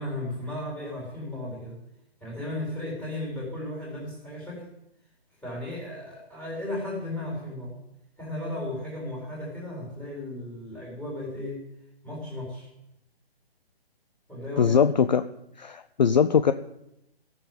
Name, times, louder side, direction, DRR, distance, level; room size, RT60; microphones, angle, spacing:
voice 1, 0.0-1.8 2.2-4.6 5.4-7.7 8.2-11.6 12.0-12.7 14.3-14.8, left 1 dB, 5° left, -4 dB, 3.8 m, -35 dB
voice 2, 14.6-15.2 15.6-16.5, left 7 dB, 45° left, 11 dB, 0.5 m, -21 dB
14.5 x 7.0 x 9.2 m, 0.82 s
hypercardioid pair, 165°, 31 cm